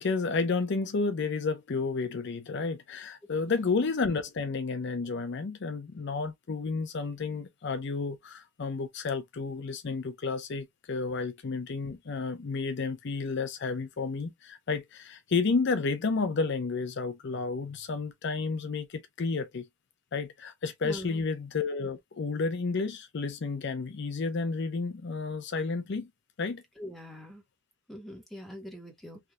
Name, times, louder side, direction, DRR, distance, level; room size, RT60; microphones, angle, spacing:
voice 1, 0.0-19.6 20.1-26.1 26.4-26.6, left 4 dB, 60° left, 0.5 m, -31 dB
voice 2, 20.8-21.2 26.8-27.4 27.9-29.2, equal, ahead, 1.3 m, -43 dB
3.4 x 2.7 x 2.3 m
head